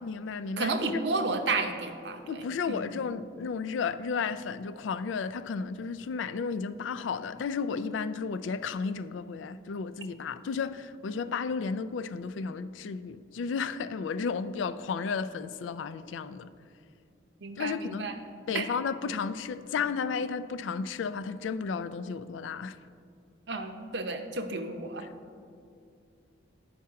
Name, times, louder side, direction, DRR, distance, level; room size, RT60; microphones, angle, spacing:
voice 1, 0.0-1.0 2.3-16.5 17.6-18.2 18.5-22.8 25.0-25.1, left 5 dB, 85° left, 0.4 m, -33 dB
voice 2, 0.6-2.8 17.4-18.2 18.5-18.7 23.5-25.1, right 3 dB, 65° right, 0.7 m, -32 dB
9.6 x 5.7 x 4.7 m
head